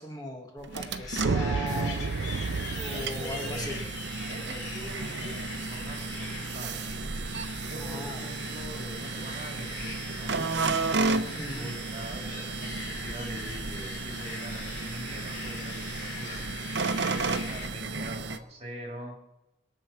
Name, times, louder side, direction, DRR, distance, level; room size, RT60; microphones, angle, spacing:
voice 1, 0.0-2.1 2.8-3.8 7.8-8.2 11.3-11.7, left 1 dB, 20° left, 1 dB, 1.6 m, -38 dB
sound 1, 0.6-18.4, right 3 dB, 65° right, 0.8 m, -34 dB
sound 2, 0.7-17.7, left 3 dB, 70° left, 3.0 m, -41 dB
sound 3, 1.2-5.6, right 4 dB, 85° right, 0.5 m, -32 dB
voice 2, 2.9-3.9 4.3-6.8 7.7-19.2, right 1 dB, 35° right, 1 dB, 3.0 m, -43 dB
21.5 x 7.8 x 5.9 m, 0.93 s
head